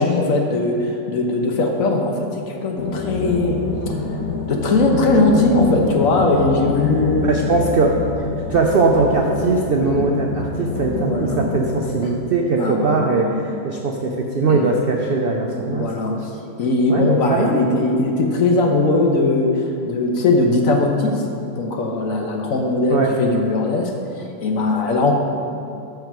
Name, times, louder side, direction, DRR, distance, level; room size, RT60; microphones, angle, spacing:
voice 1, 0.0-3.6 3.9-4.0 4.5-7.3 9.8-10.1 10.7-11.5 12.0-12.2 12.6-13.5 14.5-14.6 15.7-16.3 16.6-21.2 21.6-25.1, left 2 dB, 60° left, 2 dB, 1.2 m, -20 dB
sound 1, 2.8-11.9, left 3 dB, 75° left, 1.5 m, -26 dB
voice 2, 7.2-8.0 8.5-16.2 16.9-17.7 22.9-23.1, right 3 dB, 70° right, 1 dB, 0.5 m, -20 dB
13.5 x 4.8 x 4.6 m, 2.6 s
omnidirectional pair, 1.8 m